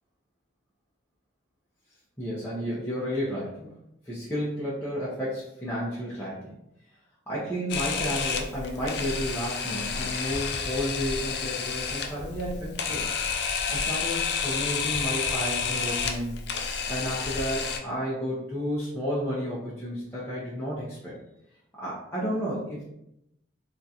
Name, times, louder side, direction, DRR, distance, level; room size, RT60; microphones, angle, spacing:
voice 1, 2.2-3.7 4.1-6.6 7.3-13.1 13.7-16.4 16.9-21.1 21.8-22.8, equal, 10° left, -9 dB, 0.6 m, -32 dB
Camera, 7.7-17.8, left 5 dB, 60° left, 0.4 m, -30 dB
3.5 x 2.5 x 2.7 m, 0.81 s
head